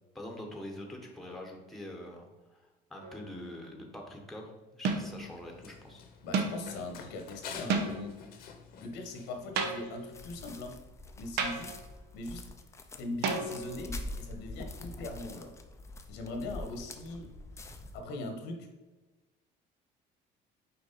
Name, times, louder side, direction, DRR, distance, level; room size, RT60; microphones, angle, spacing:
voice 1, 0.1-2.6 2.9-6.0 17.6-17.7, left 1 dB, ahead, 1 dB, 1.1 m, -44 dB
sound 1, 3.0-3.4 4.8-5.3 6.3-6.7 7.7-8.2 9.6-10.1 11.4-11.8 13.2-13.9, right 4 dB, 70° right, 1.0 m, -32 dB
Run, 5.0-10.1, left 6 dB, 60° left, 1.0 m, -49 dB
voice 2, 6.2-8.2 8.8-10.8 11.2-11.7 12.1-12.5 13.0-15.6 16.1-17.3 17.9-18.7, left 2 dB, 85° left, 4 dB, 1.3 m, -40 dB
sound 2, 10.1-18.0, left 2 dB, 15° left, 0.5 m, -45 dB
6.0 x 4.6 x 4.1 m, 1.2 s
cardioid pair, 145°, 17 cm